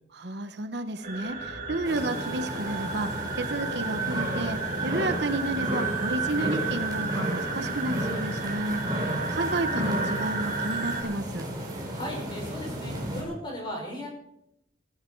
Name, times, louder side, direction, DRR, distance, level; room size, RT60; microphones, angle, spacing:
voice 1, 0.1-11.4, right 2 dB, 65° right, 8 dB, 1.1 m, -31 dB
sound 1, 1.0-11.0, right 4 dB, 40° right, 4.9 m, -33 dB
sound 2, 1.3-12.9 13.3-13.4, left 2 dB, 60° left, 2.6 m, -45 dB
sound 3, 1.8-13.2, equal, 20° right, 4.3 m, -33 dB
voice 2, 11.9-14.1, equal, 25° left, -1 dB, 6.0 m, -36 dB
18.0 x 15.5 x 4.7 m, 0.81 s
head